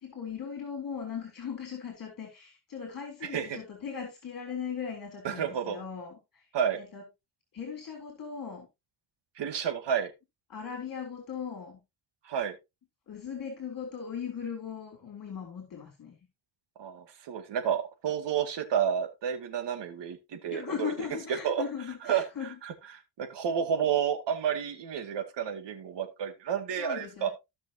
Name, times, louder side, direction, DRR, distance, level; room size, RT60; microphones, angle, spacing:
voice 1, 0.0-6.5 6.7-7.0 7.5-8.7 10.5-11.8 13.1-16.2 20.5-22.6 26.8-27.3, left 7 dB, 50° left, 4 dB, 3.3 m, -38 dB
voice 2, 3.2-3.6 5.2-5.8 6.5-6.8 9.4-10.1 12.2-12.5 16.8-20.9 21.3-21.6 22.0-22.7 23.2-27.3, right 8 dB, 70° right, 8 dB, 2.2 m, -30 dB
16.0 x 6.2 x 2.8 m, 0.23 s
cardioid pair, 105°, 44 cm